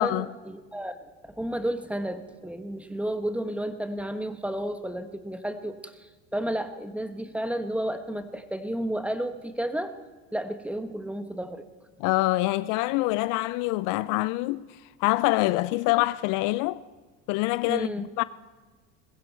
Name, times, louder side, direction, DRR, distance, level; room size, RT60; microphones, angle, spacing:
voice 1, 0.0-10.0 10.3-11.6 17.7-18.1, right 1 dB, 5° right, 1.2 m, -32 dB
voice 2, 12.0-14.7 15.0-16.8 17.3-18.2, left 19 dB, 65° left, 0.5 m, -25 dB
20.5 x 15.5 x 4.5 m
supercardioid pair, 90°, 34 cm